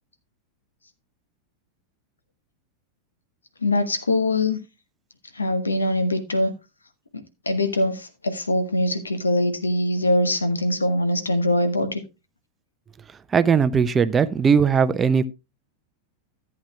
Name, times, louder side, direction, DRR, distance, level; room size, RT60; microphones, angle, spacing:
voice 1, 3.6-4.6 5.3-6.5 7.1-12.0, left 1 dB, 75° left, 1.1 m, -23 dB
voice 2, 13.3-15.2, right 6 dB, 20° right, 0.4 m, -19 dB
14.0 x 8.4 x 2.2 m
figure-of-eight pair, 90°, 0 cm